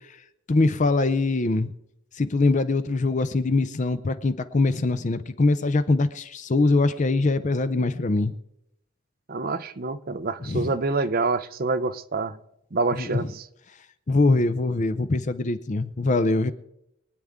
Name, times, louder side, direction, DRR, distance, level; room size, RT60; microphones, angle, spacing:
voice 1, 0.5-1.7 2.1-8.3 10.4-10.7 12.9-13.3 14.1-16.5, left 3 dB, 35° left, 12 dB, 0.5 m, -23 dB
voice 2, 9.3-12.4 12.7-13.4, right 3 dB, 45° right, 11 dB, 0.6 m, -27 dB
24.0 x 9.4 x 3.6 m, 0.83 s
head